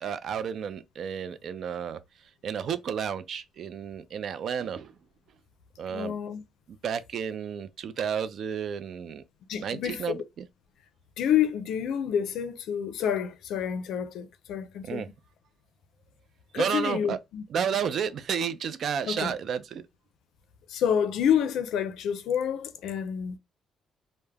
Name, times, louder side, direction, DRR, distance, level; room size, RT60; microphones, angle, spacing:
voice 1, 0.0-2.0 2.4-4.9 5.8-6.2 6.7-9.2 9.6-10.5 14.9-15.1 16.5-17.2 17.5-19.8, right 7 dB, 65° right, 0.3 m, -32 dB
voice 2, 5.9-6.4 9.5-10.2 11.2-15.1 16.5-17.4 19.1-19.3 20.7-23.4, left 8 dB, 80° left, 0.4 m, -28 dB
2.2 x 2.0 x 3.2 m
cardioid pair, 90°, 0 cm